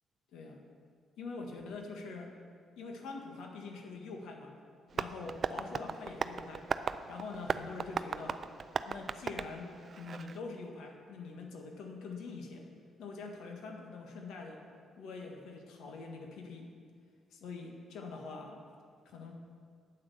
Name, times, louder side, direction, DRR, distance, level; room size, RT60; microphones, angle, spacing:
voice 1, 1.2-2.3 2.8-4.5 4.9-6.7 7.1-8.5 8.8-12.7 13.0-14.6 15.0-16.7 17.3-18.6 19.0-19.3, left 4 dB, 80° left, 2 dB, 1.6 m, -44 dB
Tap, 4.9-10.4, right 5 dB, 45° right, 0.4 m, -37 dB
9.1 x 8.7 x 6.9 m, 2.1 s
cardioid pair, 90°, 0 cm